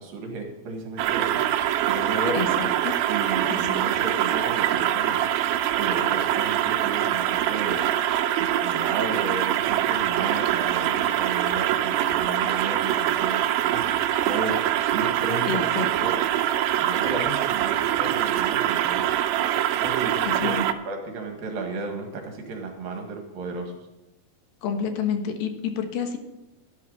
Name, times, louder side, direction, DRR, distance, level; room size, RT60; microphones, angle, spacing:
voice 1, 0.0-1.4 1.9-2.5 3.1-5.2 5.7-7.8 8.4-13.9 14.2-14.6 14.9-16.3 16.8-19.1 19.8-20.6 20.9-23.8, right 3 dB, 70° right, 3 dB, 3.6 m, -33 dB
sound 1, 1.0-20.7, right 11 dB, 90° right, 2.5 m, -24 dB
voice 2, 2.3-3.0 3.5-3.8 15.4-16.1 20.3-20.7 24.6-26.2, left 6 dB, 75° left, 5 dB, 2.9 m, -29 dB
13.0 x 11.5 x 4.1 m, 0.97 s
omnidirectional pair, 4.2 m